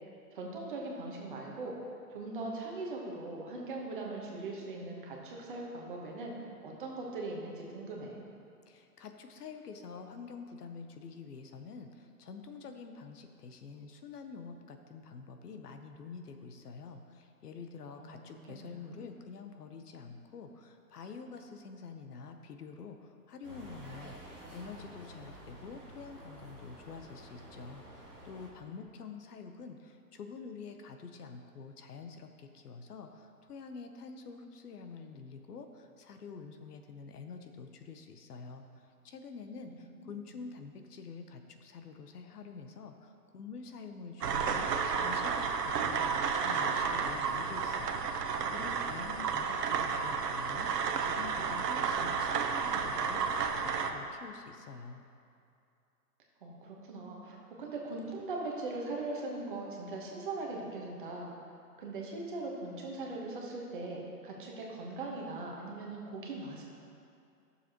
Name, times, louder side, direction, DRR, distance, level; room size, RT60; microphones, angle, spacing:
voice 1, 0.3-1.7 2.1-6.3 6.6-8.1 18.0-19.1 39.8-40.1 56.4-61.3 61.8-66.6, right 2 dB, 35° right, -2 dB, 1.1 m, -40 dB
voice 2, 8.7-38.7 39.0-55.0, left 5 dB, 75° left, 6 dB, 0.9 m, -47 dB
sound 1, 23.4-28.5, right 1 dB, 5° left, 0.8 m, -50 dB
sound 2, 44.2-53.9, right 6 dB, 85° right, 0.9 m, -32 dB
12.5 x 7.0 x 3.0 m, 2.5 s
hypercardioid pair, 170°, 47 cm